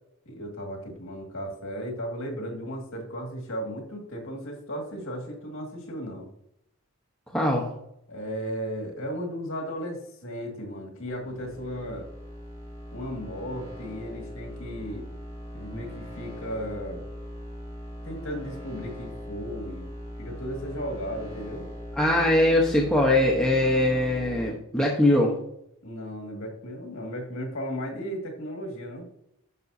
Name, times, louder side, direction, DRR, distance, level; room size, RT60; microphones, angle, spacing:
voice 1, 0.3-6.3 8.1-12.1 12.9-15.1 15.5-17.0 18.0-19.9 20.2-21.7 25.8-29.1, equal, 60° left, 1 dB, 2.1 m, -35 dB
voice 2, 7.3-7.7 22.0-25.3, left 1 dB, 5° left, -2 dB, 0.9 m, -22 dB
sound 1, 11.1-24.5, equal, 25° right, 3.1 m, -40 dB
10.5 x 6.7 x 2.7 m, 0.77 s
head